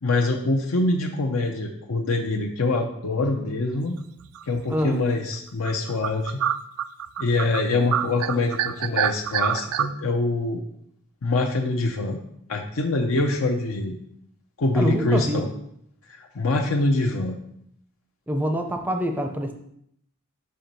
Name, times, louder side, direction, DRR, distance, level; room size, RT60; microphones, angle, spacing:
voice 1, 0.0-4.0 4.5-6.4 7.2-10.6 11.2-12.2 12.5-14.0 14.6-15.5 16.1-17.4, left 2 dB, 75° left, 1 dB, 0.6 m, -24 dB
sound 1, 4.3-4.7 5.2-5.3 5.6-7.6 7.9-9.9, right 10 dB, 90° right, 0.3 m, -26 dB
voice 2, 14.7-15.4 18.3-19.5, equal, 10° right, 5 dB, 0.5 m, -25 dB
5.3 x 4.5 x 5.1 m, 0.74 s
head